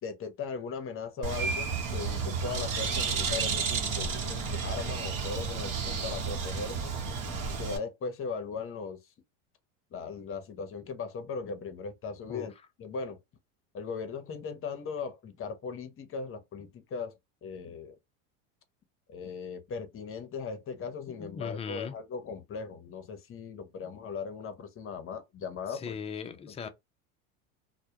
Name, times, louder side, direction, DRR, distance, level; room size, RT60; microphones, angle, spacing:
voice 1, 0.0-7.0 7.2-9.0 9.9-12.5 12.8-13.2 13.7-17.1 17.4-17.9 19.1-25.9 26.3-26.4, left 5 dB, 35° left, 0.7 m, -38 dB
Bird, 1.2-7.8, right 5 dB, 50° right, 0.9 m, -32 dB
voice 2, 21.1-22.0 25.7-26.7, left 6 dB, 15° left, 0.3 m, -39 dB
2.1 x 2.1 x 2.8 m
supercardioid pair, 100°, 40 cm